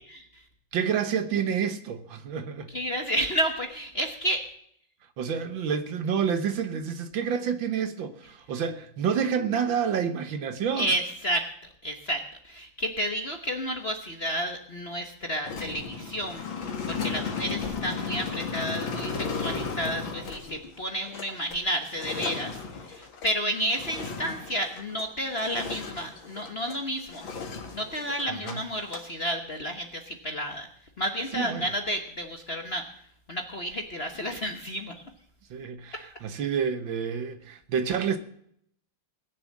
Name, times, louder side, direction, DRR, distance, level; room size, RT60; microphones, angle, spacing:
voice 1, 0.7-2.7 5.2-10.9 28.3-28.6 31.3-31.7 35.5-38.2, right 7 dB, 65° right, 1.7 m, -29 dB
voice 2, 2.7-4.5 10.8-11.5 11.8-27.2 27.7-30.7 31.0-32.9 33.3-34.9, equal, 40° left, 1.0 m, -31 dB
sound 1, 15.4-25.1 25.4-26.8 27.1-28.5 28.8-29.1, left 5 dB, 65° left, 2.5 m, -35 dB
19.5 x 7.0 x 7.4 m
omnidirectional pair, 2.4 m